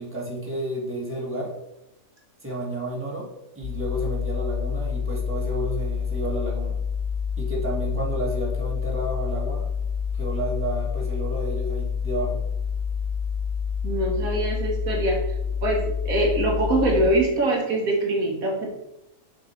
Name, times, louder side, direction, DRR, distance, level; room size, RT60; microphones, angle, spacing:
voice 1, 0.0-1.5 2.4-3.3 3.6-6.8 7.4-9.7 10.1-12.4, right 1 dB, 10° right, -3 dB, 1.7 m, -31 dB
sound 1, 3.6-17.1, left 6 dB, 50° left, 0.8 m, -28 dB
voice 2, 13.8-15.2 15.6-18.7, right 1 dB, 80° right, -1 dB, 2.0 m, -23 dB
6.2 x 5.3 x 4.4 m, 0.86 s
omnidirectional pair, 1.5 m